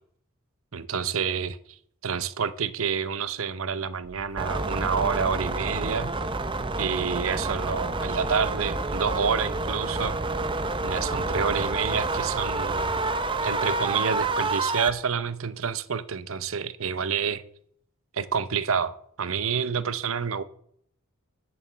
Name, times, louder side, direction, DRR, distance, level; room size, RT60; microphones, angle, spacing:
voice 1, 0.7-1.8 2.0-6.1 6.8-10.2 10.8-12.9 13.4-17.4 18.1-20.4, right 6 dB, 75° right, 0.8 m, -28 dB
sound 1, 4.0-13.7, right 1 dB, 50° right, 1.2 m, -48 dB
sound 2, 4.4-14.9, right 3 dB, 25° right, 0.8 m, -28 dB
12.5 x 7.2 x 7.5 m
head